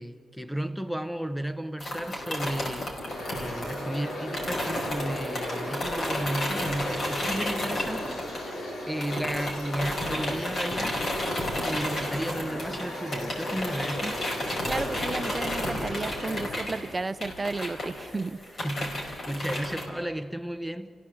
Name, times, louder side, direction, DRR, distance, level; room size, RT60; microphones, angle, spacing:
voice 1, 0.0-3.0 3.3-8.2 8.6-11.0 11.6-14.2 18.5-20.9, right 1 dB, ahead, 1.0 m, -33 dB
sound 1, 1.8-8.7 9.0-19.9, left 1 dB, 50° left, 5.1 m, -33 dB
sound 2, 3.1-16.5, left 1 dB, 85° left, 6.8 m, -36 dB
voice 2, 14.7-18.4, right 3 dB, 30° right, 0.6 m, -33 dB
29.5 x 16.0 x 7.8 m
cardioid pair, 95°, 0 cm